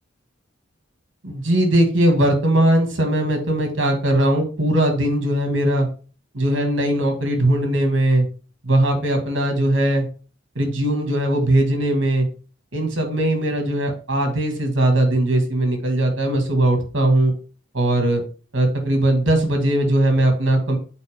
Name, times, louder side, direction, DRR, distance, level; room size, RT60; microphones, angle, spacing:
voice 1, 1.2-5.9 6.3-8.3 8.6-10.1 10.6-12.3 12.7-17.3 17.7-18.2 18.5-20.8, right 1 dB, 65° right, 5 dB, 2.1 m, -19 dB
8.2 x 4.5 x 3.7 m, 0.38 s
head